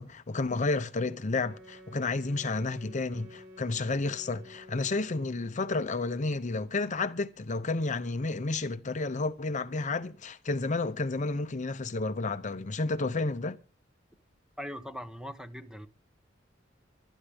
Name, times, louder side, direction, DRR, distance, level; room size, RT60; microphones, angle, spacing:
voice 1, 0.0-13.6, left 3 dB, 40° left, 0.7 m, -31 dB
Wind instrument woodwind instrument, 1.4-5.6, left 1 dB, 65° right, 5.9 m, -51 dB
voice 2, 14.6-15.9, equal, 5° right, 1.1 m, -40 dB
24.5 x 10.0 x 3.6 m
head